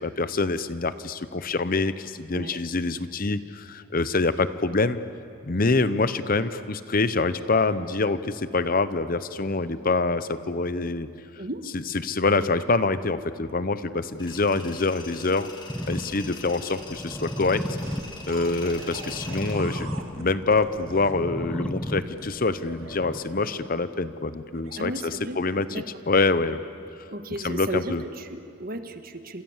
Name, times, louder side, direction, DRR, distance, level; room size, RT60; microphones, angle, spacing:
voice 1, 0.0-5.0 5.4-11.1 11.7-15.5 15.9-17.6 18.3-26.6 27.4-28.0, left 3 dB, 45° left, 13 dB, 0.8 m, -25 dB
Tools, 14.2-19.6, left 3 dB, 20° left, 2.9 m, -43 dB
sound 1, 15.7-23.7, equal, 5° left, 1.2 m, -35 dB
sound 2, 17.8-21.1 22.2-23.8 24.5-24.8, right 3 dB, 75° right, 2.4 m, -43 dB
voice 2, 24.8-25.4 25.7-25.8 27.1-29.4, right 1 dB, 45° right, 8 dB, 1.6 m, -34 dB
29.5 x 27.0 x 7.3 m, 2.5 s
head